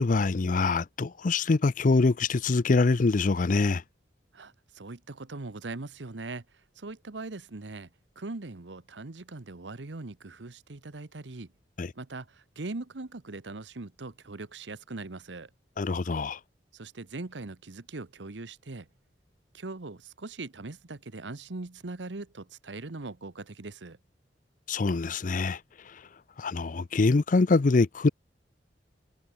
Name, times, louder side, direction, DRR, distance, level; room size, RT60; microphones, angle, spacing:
voice 1, 0.0-3.8 11.8-11.9 15.8-16.4 24.7-25.6 26.4-28.1, left 3 dB, 45° left, 0.5 m, -24 dB
voice 2, 4.3-6.4 6.8-7.9 8.2-11.5 11.9-15.5 16.7-18.9 19.5-24.0, right 3 dB, 90° right, 1.1 m, -40 dB
head